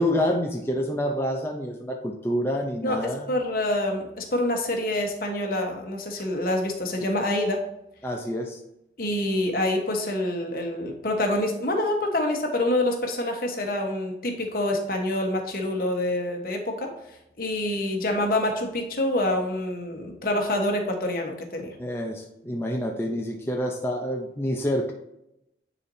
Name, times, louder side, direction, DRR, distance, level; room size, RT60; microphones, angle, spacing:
voice 1, 0.0-3.3 8.0-8.6 21.8-24.9, equal, 15° left, 0 dB, 0.6 m, -27 dB
voice 2, 2.8-7.6 9.0-16.9 17.4-21.7, left 1 dB, 55° left, 2 dB, 1.2 m, -26 dB
9.8 x 4.3 x 2.7 m, 0.84 s
head